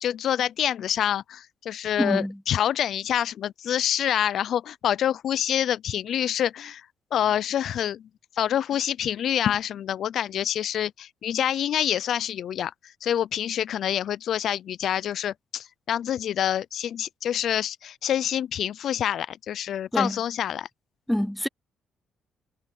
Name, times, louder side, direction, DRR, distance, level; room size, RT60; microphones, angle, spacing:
voice 1, 0.0-6.8 7.1-8.0 8.4-12.7 13.0-20.7, left 10 dB, 70° left, 0.5 m, -26 dB
voice 2, 2.0-2.4 19.9-20.2 21.1-21.5, equal, 5° left, 0.6 m, -25 dB
cardioid pair, 90°, 0 cm